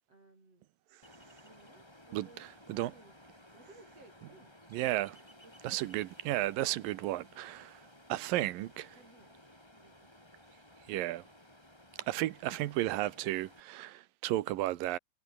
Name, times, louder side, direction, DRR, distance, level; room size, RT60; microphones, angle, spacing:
voice 1, 0.1-0.7 1.4-3.2 3.5-4.5 5.4-5.9 6.7-7.0 8.9-9.4 9.8-10.1, right 2 dB, 45° right, 8.4 m, -60 dB
Ocean, 1.0-13.6, left 1 dB, 5° left, 3.9 m, -58 dB
voice 2, 4.7-5.2 5.6-7.8 8.1-8.9 10.9-11.2 12.1-15.0, right 15 dB, 85° right, 2.6 m, -33 dB
omnidirectional pair, 4.0 m